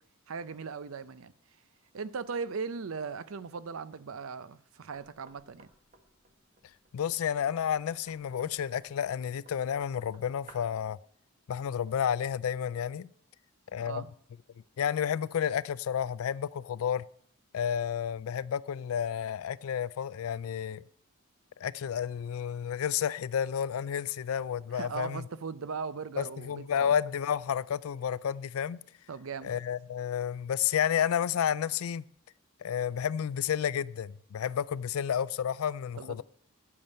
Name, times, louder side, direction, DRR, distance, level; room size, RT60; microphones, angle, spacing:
voice 1, 0.3-1.3 1.9-5.7 13.8-14.1 24.7-26.9 29.1-29.6 36.0-36.2, right 5 dB, 75° right, 0.5 m, -38 dB
Knock, 4.9-10.8, right 3 dB, 35° right, 1.4 m, -58 dB
voice 2, 6.9-11.0 11.5-13.1 13.7-14.0 14.8-17.0 17.5-20.8 21.6-25.2 26.2-28.8 29.4-32.0 32.6-36.2, left 8 dB, 80° left, 0.3 m, -31 dB
8.9 x 8.6 x 5.4 m
head